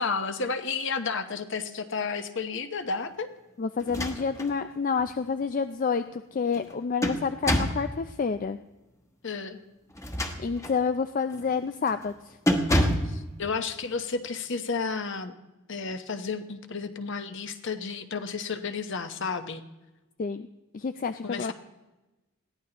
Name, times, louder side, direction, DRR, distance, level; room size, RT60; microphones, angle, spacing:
voice 1, 0.0-3.3 9.2-9.6 13.0-15.3 15.7-19.6 21.2-21.5, left 4 dB, 60° left, 8 dB, 1.0 m, -32 dB
voice 2, 3.6-8.6 10.4-12.1 20.2-20.5 20.7-21.5, left 5 dB, 40° left, 10 dB, 0.4 m, -29 dB
sound 1, 3.8-4.5 5.0-5.1 6.5-7.9 9.9-10.8 11.3-11.5 11.9-12.1 12.5-13.2, equal, 15° left, 1.1 m, -27 dB
21.0 x 15.5 x 3.0 m, 1.1 s
head